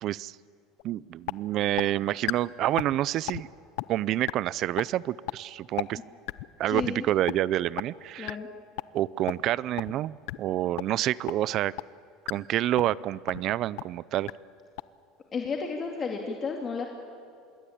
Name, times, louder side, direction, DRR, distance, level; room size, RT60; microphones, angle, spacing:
voice 1, 0.0-0.4 0.8-3.5 3.9-6.0 6.6-8.4 8.9-11.7 12.3-14.3, right 13 dB, 50° right, 21 dB, 0.5 m, -28 dB
sound 1, 0.8-0.9 1.3-1.4 1.8-1.9 2.3-2.4 2.8-3.0 3.3-3.4 3.8-3.9 4.3-4.4 4.8-4.9 5.3-5.4 5.8-5.9 6.3-6.5 6.8-6.9 7.3-7.4 7.8-7.9 8.3-8.4 8.8-8.9 9.3-9.4 9.8-9.9 10.3-10.4 10.8-10.9 11.3-11.4 11.8-11.9 12.3-12.4 12.8-13.0 13.3-13.4 13.8-13.9 14.3-14.4 14.8-14.9, left 23 dB, 70° left, 0.7 m, -31 dB
voice 2, 6.7-7.1 8.2-8.5 15.3-16.9, left 5 dB, 30° left, 2 dB, 2.4 m, -32 dB
26.5 x 21.0 x 8.7 m, 2.5 s
supercardioid pair, 125°, 0 cm